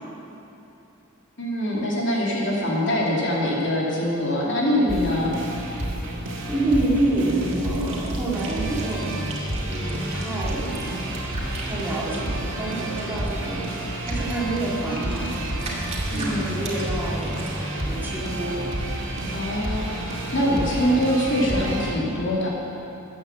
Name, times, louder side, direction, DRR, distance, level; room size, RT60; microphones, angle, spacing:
voice 1, 1.4-5.3 16.1-16.5 19.3-22.5, equal, 60° left, -4 dB, 2.6 m, -24 dB
sound 1, 4.9-22.0, right 1 dB, 65° right, 2.2 m, -30 dB
voice 2, 6.5-9.1 9.7-11.2 11.6-15.3 16.1-17.3 17.8-18.7, right 2 dB, 10° right, -6 dB, 2.7 m, -28 dB
sound 2, 7.7-12.4 13.4-13.5 14.0-17.6, right 3 dB, 35° right, 2.3 m, -39 dB
sound 3, 9.8-20.9, equal, 10° left, 3.5 m, -41 dB
14.0 x 9.4 x 7.2 m, 2.9 s
head